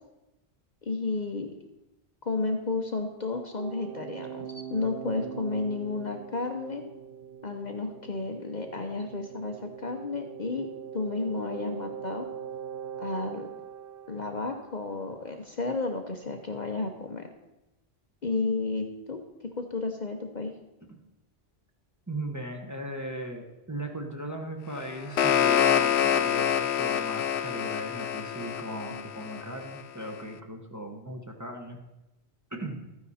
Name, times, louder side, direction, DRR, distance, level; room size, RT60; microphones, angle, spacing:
voice 1, 0.9-1.5 2.3-6.8 7.4-10.7 10.9-12.3 13.0-13.5 14.1-17.3 18.2-20.5, left 3 dB, 45° left, 4 dB, 0.9 m, -32 dB
sound 1, 3.6-15.2, right 8 dB, 65° right, 0.8 m, -42 dB
voice 2, 22.1-31.8 32.5-32.9, right 1 dB, 15° right, 1 dB, 1.2 m, -38 dB
sound 2, 24.8-29.8, left 9 dB, 80° left, 0.9 m, -26 dB
13.0 x 9.7 x 4.2 m, 0.95 s
omnidirectional pair, 1.1 m